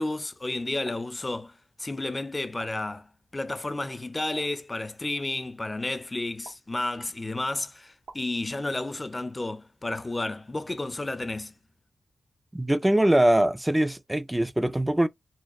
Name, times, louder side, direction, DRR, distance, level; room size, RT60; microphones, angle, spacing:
voice 1, 0.0-11.5, left 2 dB, 30° left, 0.6 m, -32 dB
sound 1, 0.8-1.0 2.6-2.7 4.4-4.5 6.4-6.6 8.0-8.2 9.9-10.1, right 4 dB, 80° right, 0.9 m, -46 dB
voice 2, 12.5-15.1, right 1 dB, 15° right, 0.4 m, -22 dB
4.2 x 2.2 x 3.1 m
supercardioid pair, 40°, 0 cm